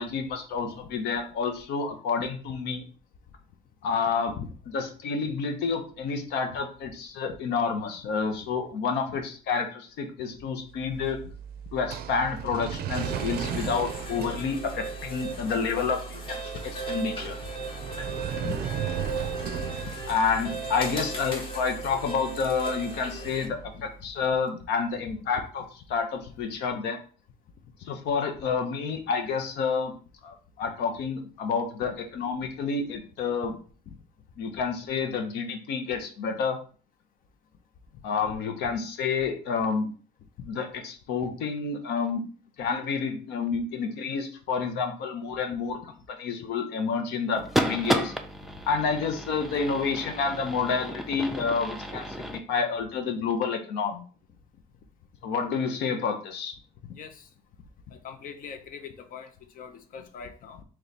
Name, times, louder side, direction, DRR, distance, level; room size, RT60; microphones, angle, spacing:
voice 1, 0.0-2.8 3.8-4.4 4.7-11.2 11.7-16.4 16.7-17.4 20.1-25.6 25.9-27.0 27.8-29.9 30.2-33.6 34.4-36.6 38.0-39.9 40.5-42.3 42.6-48.1 48.7-54.0 55.2-56.5, left 5 dB, 80° left, 0.9 m, -29 dB
sound 1, 10.8-23.9, right 9 dB, 65° right, 0.4 m, -37 dB
sound 2, 12.9-23.5, right 2 dB, 30° left, 1.1 m, -37 dB
voice 2, 18.9-19.3 19.8-19.9 23.5-23.9 56.8-57.3 57.9-60.6, left 7 dB, 55° left, 0.6 m, -42 dB
sound 3, 47.4-52.4, right 1 dB, ahead, 0.4 m, -32 dB
3.2 x 3.1 x 4.1 m
cardioid pair, 110°, 17 cm